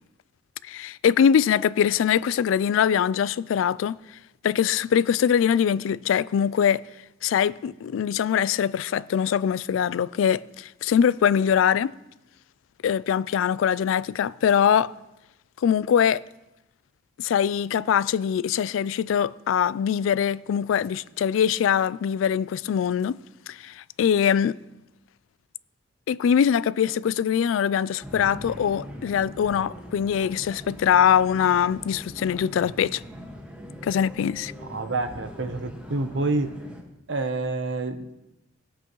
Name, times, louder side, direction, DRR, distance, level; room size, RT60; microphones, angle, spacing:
voice 1, 0.6-4.0 4.4-6.8 7.2-11.9 12.8-14.9 15.6-16.2 17.2-23.2 23.5-24.6 26.1-33.0 33.8-34.5, left 8 dB, 85° left, 0.3 m, -22 dB
sound 1, 28.0-36.8, equal, 5° right, 1.5 m, -41 dB
voice 2, 34.7-36.5 37.1-38.1, right 2 dB, 70° right, 0.8 m, -28 dB
18.0 x 7.9 x 3.1 m
head